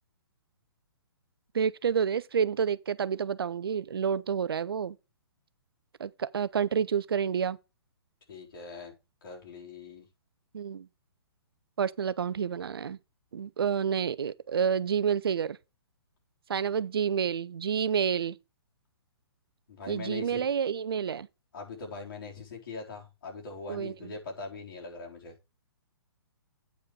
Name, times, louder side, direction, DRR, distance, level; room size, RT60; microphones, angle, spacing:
voice 1, 1.5-5.0 6.0-7.6 10.5-10.9 11.8-13.0 13.3-15.6 16.5-18.4 19.9-21.3 23.7-24.1, right 7 dB, 65° right, 0.6 m, -29 dB
voice 2, 8.3-8.9 9.2-10.1 19.7-20.4 21.5-25.3, left 4 dB, 60° left, 4.1 m, -42 dB
8.7 x 5.5 x 4.8 m
figure-of-eight pair, 125°, 13 cm